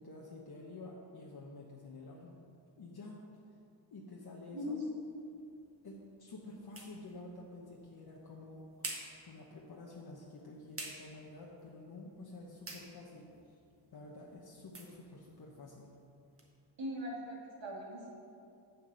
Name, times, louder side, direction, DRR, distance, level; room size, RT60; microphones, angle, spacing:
voice 1, 0.0-2.3 2.8-3.2 3.9-4.8 5.8-13.6 13.9-15.9, left 2 dB, 55° left, -3 dB, 1.1 m, -50 dB
sound 1, 5.0-16.5, right 2 dB, 30° right, 1.5 m, -52 dB
voice 2, 16.8-18.1, equal, 70° right, -3 dB, 2.4 m, -40 dB
7.3 x 7.0 x 6.3 m, 2.6 s
cardioid pair, 80°, 46 cm